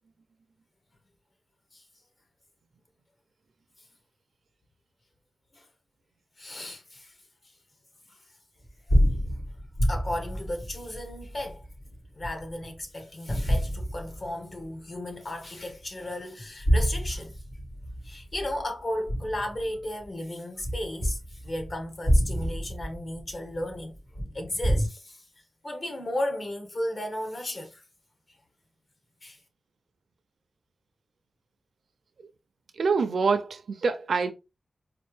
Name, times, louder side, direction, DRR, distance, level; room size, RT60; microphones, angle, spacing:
voice 1, 6.4-7.2 9.9-11.6 12.1-17.4 18.0-23.9 24.3-25.3 25.6-27.8 29.2-29.4, left 1 dB, 45° left, 1.2 m, -34 dB
sound 1, 8.6-12.8 13.3-14.6 15.1-15.2 16.4-20.1 20.6-24.9, equal, 70° left, 2.3 m, -28 dB
voice 2, 32.8-34.3, right 4 dB, 85° right, 0.4 m, -25 dB
4.2 x 2.5 x 3.2 m
wide cardioid pair, 90°, 0 cm